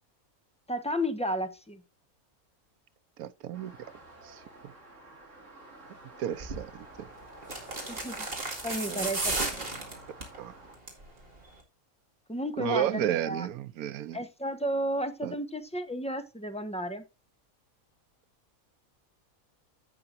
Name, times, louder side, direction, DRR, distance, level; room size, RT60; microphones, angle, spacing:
voice 1, 0.7-1.8 7.9-8.3 8.6-9.7 12.3-13.5 14.1-17.0, equal, 5° left, 0.9 m, -33 dB
voice 2, 3.2-3.8 4.2-4.7 6.2-7.1 8.9-9.1 10.4-10.5 12.6-14.2 15.2-15.3, right 11 dB, 90° right, 1.2 m, -33 dB
sound 1, 3.5-10.8, right 1 dB, 55° right, 2.9 m, -50 dB
sound 2, 6.4-6.7 7.4-10.4 10.7-11.1 11.4-11.5, right 2 dB, 40° right, 2.5 m, -33 dB
15.5 x 5.8 x 2.6 m
omnidirectional pair, 1.5 m